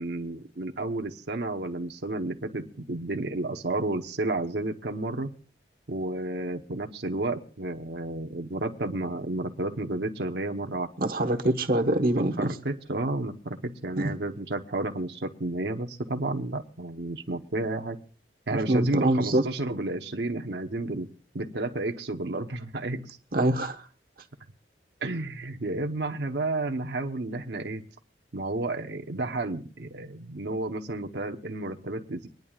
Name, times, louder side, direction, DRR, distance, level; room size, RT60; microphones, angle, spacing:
voice 1, 0.0-5.4 5.9-10.9 12.1-18.0 18.5-21.1 21.3-23.2 25.0-27.8 28.3-32.3, right 2 dB, 75° right, 0.9 m, -31 dB
voice 2, 11.0-12.5 14.0-14.1 18.5-19.4 23.3-23.8, right 1 dB, 55° right, 1.2 m, -24 dB
25.5 x 10.5 x 2.4 m
head